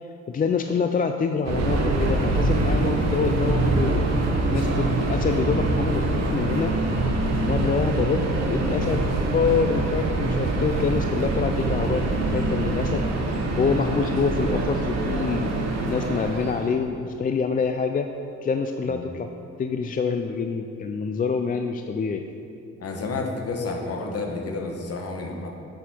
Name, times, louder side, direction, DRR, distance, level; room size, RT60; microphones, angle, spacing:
voice 1, 0.3-4.0 4.5-6.8 7.4-13.1 13.6-15.5 15.9-18.1 18.4-19.3 19.6-22.3, left 5 dB, 30° left, 6 dB, 0.4 m, -26 dB
Subway metro underground, 1.4-16.8, right 2 dB, 60° right, 1.2 m, -24 dB
voice 2, 2.6-3.1 18.9-19.0 22.8-25.5, left 3 dB, 50° left, 2 dB, 1.4 m, -31 dB
8.3 x 7.2 x 4.4 m, 2.9 s
cardioid pair, 90°, 30 cm